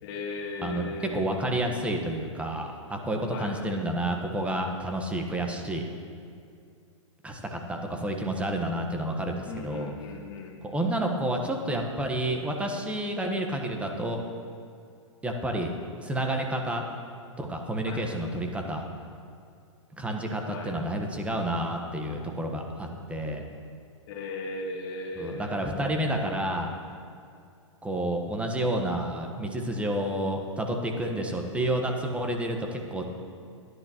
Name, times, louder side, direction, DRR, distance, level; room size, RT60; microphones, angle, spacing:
voice 1, 0.0-1.3 3.3-3.5 9.5-10.6 17.8-18.1 20.5-20.7 24.1-25.6, left 3 dB, 45° left, 0 dB, 1.8 m, -37 dB
voice 2, 1.1-5.8 7.2-9.9 10.7-14.2 15.2-15.7 16.0-16.8 17.4-18.8 20.0-23.4 25.2-26.7 27.8-33.0, right 1 dB, 10° right, 2 dB, 1.2 m, -30 dB
17.5 x 11.0 x 3.0 m, 2.4 s
hypercardioid pair, 115°, 16 cm